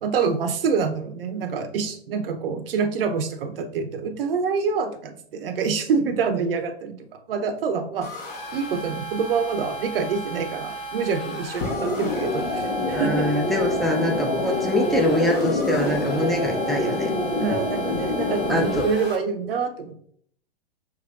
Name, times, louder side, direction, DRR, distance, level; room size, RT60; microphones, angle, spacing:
voice 1, 0.0-8.1 8.5-13.3 17.4-19.9, right 5 dB, 60° right, 6 dB, 0.7 m, -26 dB
sound 1, 8.0-19.2, right 1 dB, 30° left, 1.1 m, -35 dB
sound 2, 11.6-18.8, left 2 dB, 70° left, 1.5 m, -26 dB
voice 2, 12.9-17.1 18.5-18.9, equal, ahead, 0 dB, 0.6 m, -24 dB
5.9 x 3.1 x 2.4 m, 0.62 s
figure-of-eight pair, 110°, 32 cm